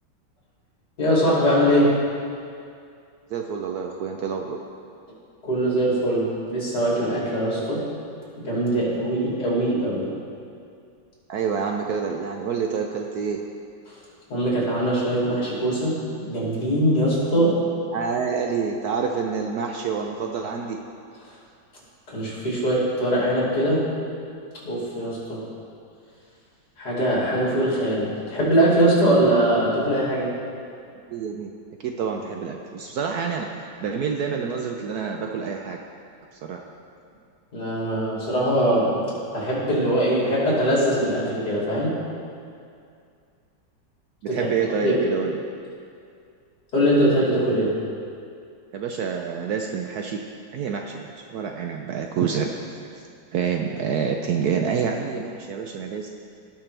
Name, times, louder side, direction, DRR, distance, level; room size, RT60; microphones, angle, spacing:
voice 1, 1.0-1.9 5.4-7.8 8.4-10.1 13.9-14.0 14.3-16.0 16.3-17.6 22.1-23.8 24.6-25.5 26.8-30.3 37.5-38.9 39.3-42.0 44.3-44.5 44.8-44.9 46.7-47.8, right 1 dB, 50° left, -7 dB, 3.2 m, -22 dB
voice 2, 3.3-4.6 11.3-13.4 17.9-20.8 31.1-31.5 31.8-35.8 36.4-36.6 44.2-45.3 48.7-50.2 50.5-52.8 53.3-56.1, right 6 dB, 75° right, 2 dB, 0.9 m, -27 dB
17.5 x 5.9 x 3.3 m, 2.4 s
omnidirectional pair, 2.2 m